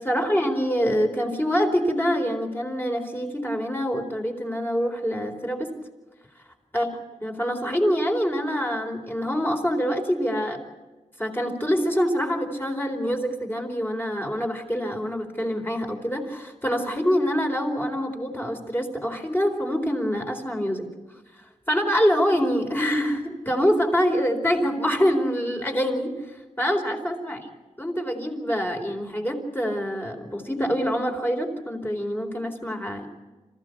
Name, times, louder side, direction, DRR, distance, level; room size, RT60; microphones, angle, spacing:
voice 1, 0.0-5.7 6.7-6.9 7.2-10.6 11.2-20.9 21.7-26.2 26.6-27.4 27.8-33.1, equal, 15° left, 3 dB, 4.2 m, -25 dB
26.5 x 15.5 x 8.4 m, 1.2 s
wide cardioid pair, 90°, 12 cm